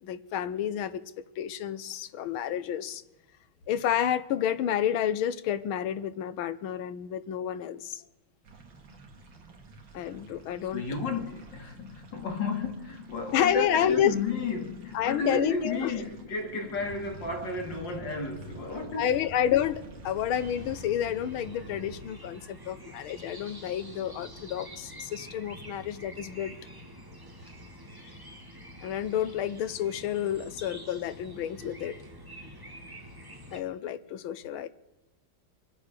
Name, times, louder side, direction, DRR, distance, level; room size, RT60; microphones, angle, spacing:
voice 1, 0.0-3.0 3.7-8.0 9.9-10.8 13.3-14.1 14.9-16.0 19.0-26.5 28.8-32.0 33.5-34.7, left 10 dB, 75° left, 1.7 m, -30 dB
sound 1, 8.4-20.9, right 3 dB, 65° right, 2.6 m, -52 dB
voice 2, 10.7-19.1, left 3 dB, 60° left, 2.9 m, -33 dB
sound 2, 16.7-22.0, equal, 30° right, 3.7 m, -45 dB
sound 3, 20.3-33.6, equal, 10° right, 1.7 m, -47 dB
25.0 x 8.4 x 6.6 m
omnidirectional pair, 2.3 m